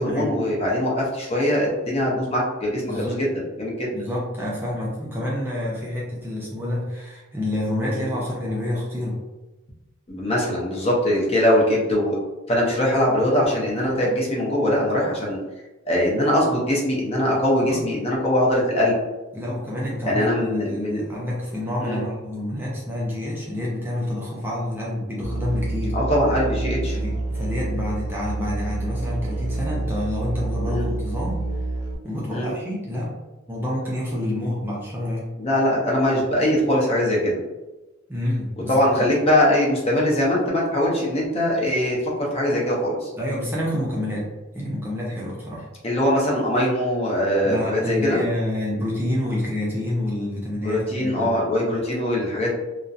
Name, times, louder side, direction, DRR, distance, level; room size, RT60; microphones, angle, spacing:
voice 1, 0.0-3.9 7.9-8.0 10.1-12.2 12.5-15.4 15.9-18.9 20.0-21.0 21.8-22.0 25.9-27.0 30.6-30.9 32.3-32.5 35.4-37.4 38.7-43.1 45.8-48.3 50.6-52.6, left 1 dB, 30° left, -4 dB, 0.6 m, -22 dB
voice 2, 2.8-3.3 3.9-9.2 17.6-17.8 19.3-26.0 26.9-31.4 32.0-33.1 33.5-35.3 38.1-39.0 43.2-45.7 47.4-51.3, left 1 dB, 10° right, -5 dB, 0.4 m, -28 dB
Musical instrument, 25.2-32.0, right 2 dB, 75° right, 0.5 m, -28 dB
2.6 x 2.0 x 2.3 m, 1.1 s
head